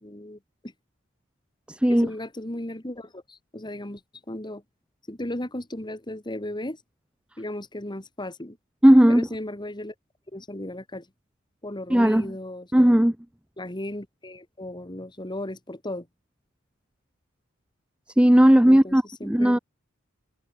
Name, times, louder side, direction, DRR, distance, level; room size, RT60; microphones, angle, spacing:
voice 1, 0.0-0.7 1.9-4.0 4.3-4.6 5.1-6.8 7.4-8.6 9.1-9.9 10.3-11.1 11.6-12.7 13.6-16.1 18.7-19.5, left 1 dB, 25° left, 2.6 m, -36 dB
voice 2, 1.7-2.1 8.8-9.3 11.9-12.3 12.7-13.2 18.2-19.6, equal, 5° right, 0.5 m, -17 dB
head